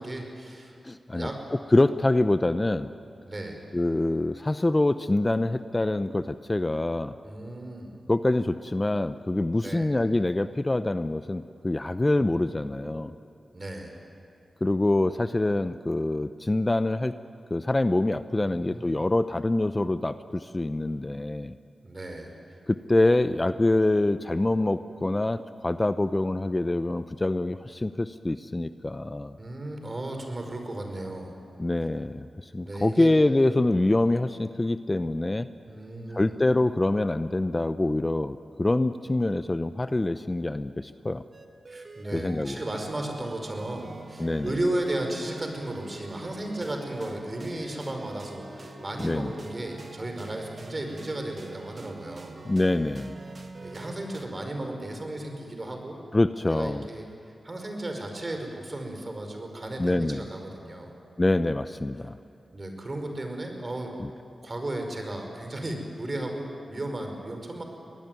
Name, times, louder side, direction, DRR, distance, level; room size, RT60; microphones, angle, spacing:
voice 1, 0.0-0.7 1.1-1.4 3.3-3.6 7.2-7.9 9.6-9.9 12.2-12.3 13.5-14.0 18.4-19.0 21.8-22.3 29.4-31.4 32.6-33.1 33.7-33.8 35.7-36.3 41.7-52.4 53.6-56.0 56.5-57.0 57.4-60.9 62.5-63.9 64.4-67.6, right 1 dB, 35° right, 4 dB, 5.2 m, -34 dB
voice 2, 0.8-1.3 1.7-2.9 3.7-7.1 8.1-13.2 14.6-17.2 17.5-21.6 22.7-29.4 31.6-35.5 36.1-41.2 42.1-42.6 44.2-44.5 49.0-49.3 52.5-53.2 56.1-56.9 59.8-60.2 61.2-62.2 64.0-64.1, left 2 dB, 25° left, 12 dB, 0.7 m, -25 dB
sound 1, 41.3-54.2, right 3 dB, 55° right, 2.2 m, -45 dB
24.0 x 19.0 x 9.3 m, 2.6 s
cardioid pair, 50°, 0 cm